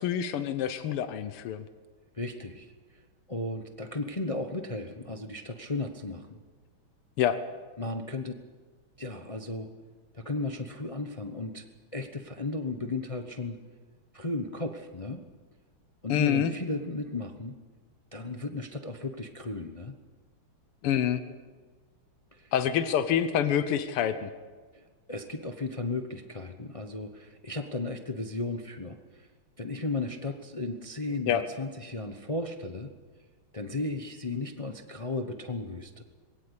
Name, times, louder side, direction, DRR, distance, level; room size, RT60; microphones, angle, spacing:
voice 1, 0.0-1.6 7.2-7.4 16.1-16.5 20.8-21.2 22.5-24.3 31.3-31.4, left 9 dB, 90° left, 10 dB, 1.8 m, -27 dB
voice 2, 2.1-3.0 3.3-6.4 7.8-8.4 9.0-9.7 10.1-11.6 11.9-13.6 14.1-15.2 16.0-17.6 18.1-19.9 22.3-22.5 24.7-24.8 25.1-29.3 29.6-32.9 33.5-36.0, left 2 dB, 45° left, 6 dB, 0.4 m, -35 dB
21.5 x 17.5 x 8.3 m, 1.4 s
omnidirectional pair, 2.4 m